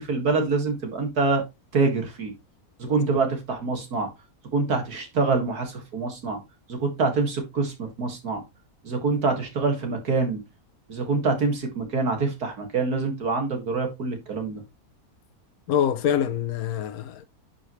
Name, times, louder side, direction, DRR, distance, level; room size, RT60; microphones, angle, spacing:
voice 1, 0.0-1.4 1.7-2.3 2.8-4.1 4.5-6.4 6.7-8.4 8.8-10.4 10.9-14.6, right 3 dB, 85° right, 2.6 m, -25 dB
voice 2, 15.7-17.3, left 9 dB, 75° left, 1.2 m, -25 dB
10.5 x 5.1 x 3.2 m
omnidirectional pair, 1.6 m